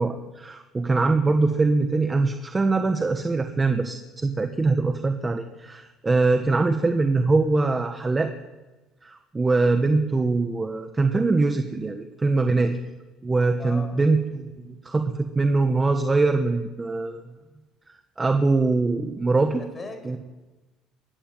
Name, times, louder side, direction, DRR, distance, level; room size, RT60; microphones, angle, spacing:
voice 1, 0.0-8.3 9.0-12.8 13.2-17.2 18.2-19.6 20.1-20.2, right 3 dB, 20° right, 6 dB, 1.3 m, -23 dB
voice 2, 13.6-14.0 19.5-20.2, left 3 dB, 25° left, 7 dB, 5.1 m, -39 dB
23.0 x 14.5 x 9.2 m, 1.2 s
cardioid pair, 115°, 0 cm